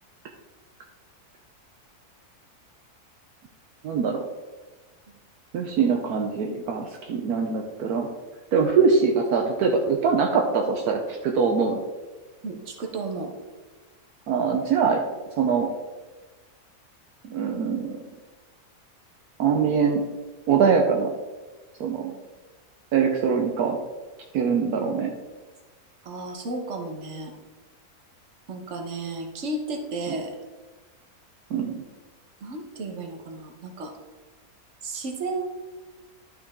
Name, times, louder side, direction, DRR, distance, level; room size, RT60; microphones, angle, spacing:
voice 1, 3.8-4.2 5.5-8.1 8.5-11.8 14.3-15.0 15.4-15.7 17.2-18.0 19.4-20.0 20.5-21.1 21.8-22.1 22.9-23.8 24.3-25.1 30.1-30.2 31.5-31.8, right 5 dB, 75° right, 2 dB, 1.3 m, -23 dB
voice 2, 12.4-13.3 22.0-22.2 26.0-27.3 28.5-30.3 32.4-34.0 34.8-35.4, right 2 dB, 50° right, 3 dB, 1.5 m, -33 dB
11.5 x 5.6 x 3.7 m, 1.2 s
omnidirectional pair, 1.6 m